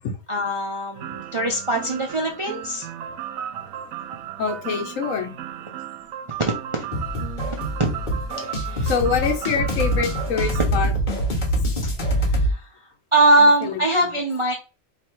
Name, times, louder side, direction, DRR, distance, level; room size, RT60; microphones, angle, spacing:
voice 1, 0.3-2.9 6.3-6.9 7.8-7.9 8.4-8.9 11.8-12.7 13.1-14.5, right 2 dB, 40° right, 0 dB, 0.4 m, -22 dB
sound 1, 0.9-10.7, right 10 dB, 90° right, 1.0 m, -35 dB
voice 2, 4.4-5.3 8.8-10.9 13.4-14.1, left 6 dB, 75° left, 4 dB, 1.2 m, -25 dB
sound 2, 6.9-12.5, equal, 40° left, 1.0 m, -24 dB
3.3 x 2.8 x 4.4 m, 0.32 s
omnidirectional pair, 1.4 m